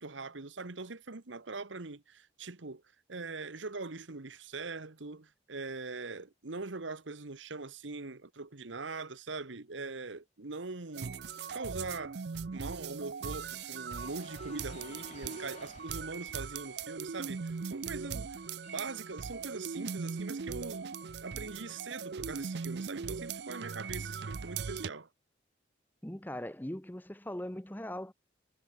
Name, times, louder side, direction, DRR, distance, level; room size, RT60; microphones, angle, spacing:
voice 1, 0.0-2.8 3.1-11.1 11.5-12.2 12.5-18.4 18.7-20.9 21.2-25.1, right 3 dB, 90° right, 1.3 m, -42 dB
sound 1, 10.9-24.9, right 5 dB, 65° right, 0.5 m, -40 dB
sound 2, 13.2-17.7 18.1-19.6, left 3 dB, 35° left, 4.0 m, -54 dB
voice 2, 26.0-28.1, left 1 dB, 10° left, 0.9 m, -40 dB
head